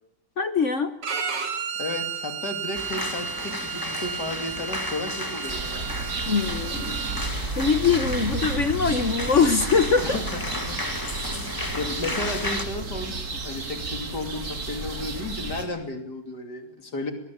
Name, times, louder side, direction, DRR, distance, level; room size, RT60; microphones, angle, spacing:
voice 1, 0.4-0.9 6.3-7.0 7.6-10.2, left 5 dB, 45° left, 11 dB, 1.3 m, -22 dB
Bowed string instrument, 1.0-7.3, right 7 dB, 70° right, 2.5 m, -33 dB
voice 2, 1.8-5.9 10.0-10.4 10.7-17.1, left 2 dB, 65° left, 6 dB, 3.4 m, -33 dB
sound 1, 2.7-12.6, left 1 dB, 10° left, 1.9 m, -34 dB
sound 2, 5.5-15.6, right 3 dB, 55° right, 2.8 m, -32 dB
23.0 x 19.0 x 8.6 m, 0.76 s
omnidirectional pair, 1.9 m